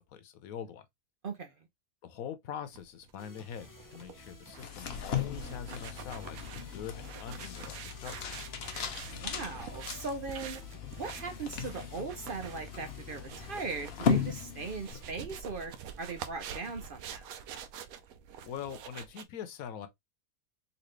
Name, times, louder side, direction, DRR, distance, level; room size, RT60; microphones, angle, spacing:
voice 1, 0.1-0.8 2.0-8.5 18.4-19.9, left 8 dB, 90° left, 1.2 m, -43 dB
voice 2, 1.2-1.7 9.1-10.6 11.0-17.2, right 4 dB, 50° right, 0.7 m, -39 dB
sound 1, 2.7-19.2, right 8 dB, 85° right, 1.0 m, -47 dB
sound 2, 3.2-15.0, left 2 dB, 30° left, 0.3 m, -55 dB
sound 3, 4.5-15.1, left 7 dB, 55° left, 0.8 m, -37 dB
4.0 x 2.8 x 3.1 m
omnidirectional pair, 1.4 m